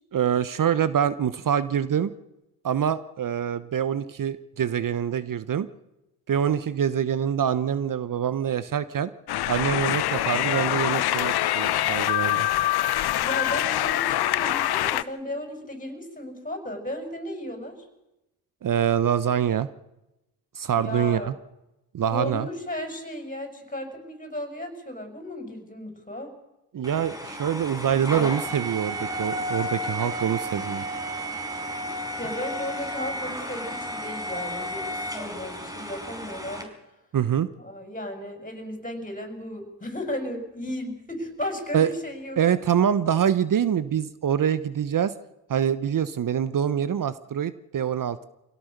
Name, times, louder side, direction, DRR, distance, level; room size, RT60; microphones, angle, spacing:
voice 1, 0.1-2.1 2.6-5.7 6.3-9.1 9.5-12.5 18.6-19.7 20.6-21.3 21.9-22.5 26.7-30.8 37.1-37.5 41.7-41.9 42.4-45.1 45.5-48.2, right 9 dB, 40° right, 16 dB, 1.1 m, -25 dB
sound 1, 9.3-15.0, left 13 dB, 50° left, 0.9 m, -24 dB
voice 2, 13.2-17.9 20.7-21.3 22.1-26.3 32.2-36.7 37.6-42.4, left 1 dB, 15° left, 5 dB, 6.9 m, -35 dB
sound 2, 26.8-36.6, equal, 5° right, 5.0 m, -33 dB
25.0 x 17.5 x 6.8 m, 0.93 s
hypercardioid pair, 55°, 48 cm